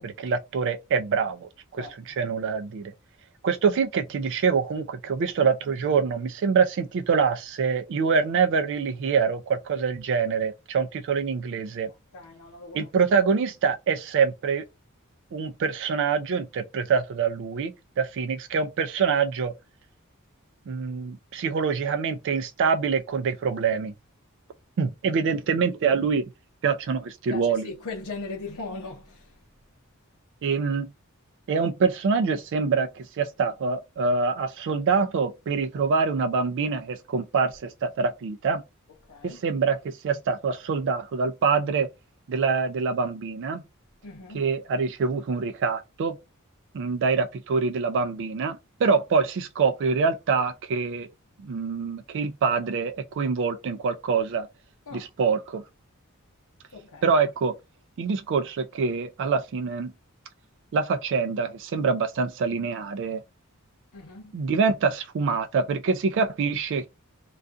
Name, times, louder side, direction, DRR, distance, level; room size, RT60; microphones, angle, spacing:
voice 1, 0.0-2.9 3.4-11.9 12.7-14.6 15.3-19.5 20.7-23.9 24.8-26.3 26.6-27.7 30.4-30.9 31.5-38.6 39.2-41.9 42.3-43.6 44.3-46.2 46.7-51.1 51.4-54.5 54.9-55.6 57.0-57.6 58.0-59.9 60.7-63.2 64.3-66.9, right 5 dB, 55° right, 0.3 m, -25 dB
voice 2, 12.1-12.9 23.5-23.6 27.3-29.3 39.1-39.4 44.0-44.4 54.9-55.1 56.7-57.1 63.9-64.4, left 3 dB, 85° left, 0.7 m, -39 dB
2.4 x 2.3 x 2.4 m
head